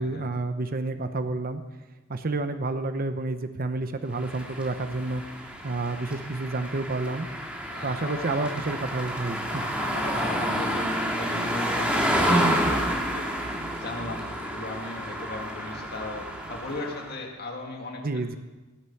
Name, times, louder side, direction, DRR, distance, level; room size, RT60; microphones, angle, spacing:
voice 1, 0.0-1.6 2.1-5.2 5.6-7.3 7.8-9.6 18.0-18.4, right 2 dB, 45° right, 9 dB, 0.8 m, -29 dB
sound 1, 4.2-17.1, equal, 5° right, 1.9 m, -29 dB
voice 2, 7.7-8.5 9.4-13.4 13.7-18.4, left 2 dB, 50° left, 1 dB, 2.0 m, -38 dB
17.0 x 8.0 x 7.1 m, 1.2 s
head